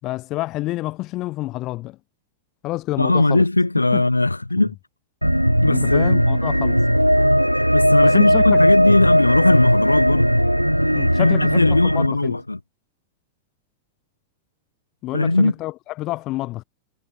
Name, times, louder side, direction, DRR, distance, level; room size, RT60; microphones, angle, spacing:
voice 1, 0.0-2.0 2.6-3.4 3.9-4.1 5.7-6.8 8.0-8.7 10.9-12.4 15.0-16.6, left 18 dB, 40° left, 0.7 m, -28 dB
voice 2, 3.0-4.7 5.6-6.3 7.7-10.4 11.1-12.6 15.1-15.5, left 2 dB, 85° left, 0.5 m, -19 dB
sound 1, 5.2-12.1, equal, 90° right, 0.4 m, -17 dB
figure-of-eight pair, 90°, 0 cm